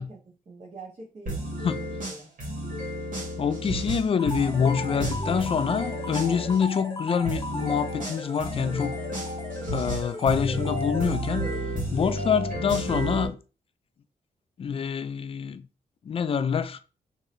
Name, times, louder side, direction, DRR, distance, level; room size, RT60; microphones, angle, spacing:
voice 1, 0.0-2.3, right 3 dB, 50° right, 1.4 m, -45 dB
sound 1, 1.3-6.6 7.3-13.3, right 1 dB, 75° right, 2.0 m, -32 dB
voice 2, 3.4-9.0 9.7-11.5 11.9-13.4 14.6-15.6 16.1-16.8, left 7 dB, 45° left, 0.4 m, -26 dB
sound 2, 4.2-12.0, left 1 dB, 20° left, 0.9 m, -38 dB
3.7 x 2.8 x 3.1 m
cardioid pair, 95°, 14 cm